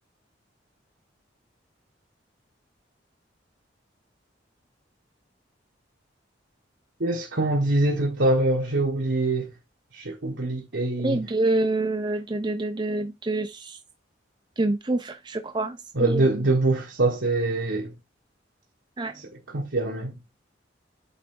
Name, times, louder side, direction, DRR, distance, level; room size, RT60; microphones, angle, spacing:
voice 1, 7.0-9.5 9.9-11.2 15.9-17.9 19.1-20.4, right 2 dB, 75° right, 1.3 m, -24 dB
voice 2, 11.0-13.8 14.6-16.3 19.0-19.2, right 2 dB, 25° right, 0.5 m, -27 dB
8.5 x 3.6 x 3.7 m
head